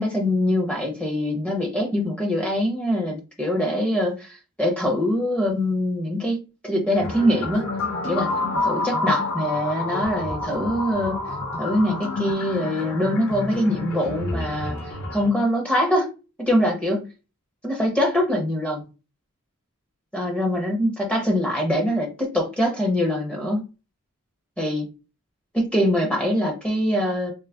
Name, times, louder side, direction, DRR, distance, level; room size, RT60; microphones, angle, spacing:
voice 1, 0.0-7.7 8.1-8.3 8.6-11.2 11.6-14.7 15.1-16.1 16.4-17.1 17.6-18.8 20.1-23.6 24.6-24.9 25.5-27.3, equal, 5° left, 0.8 m, -23 dB
sound 1, 6.9-15.3, left 2 dB, 70° left, 1.2 m, -29 dB
3.7 x 2.1 x 3.4 m
head